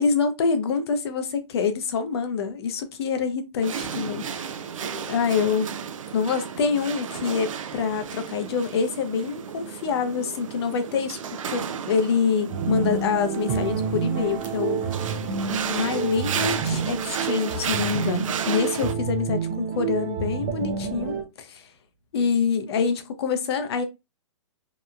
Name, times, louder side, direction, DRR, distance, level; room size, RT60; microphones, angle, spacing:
voice 1, 0.0-4.6 5.1-5.7 6.1-14.9 15.7-21.7 22.1-23.8, left 5 dB, 55° left, 0.5 m, -26 dB
sound 1, 3.6-18.9, right 7 dB, 90° right, 0.4 m, -33 dB
sound 2, 12.5-21.2, right 6 dB, 30° right, 0.5 m, -29 dB
2.8 x 2.0 x 2.3 m
hypercardioid pair, 150°, 16 cm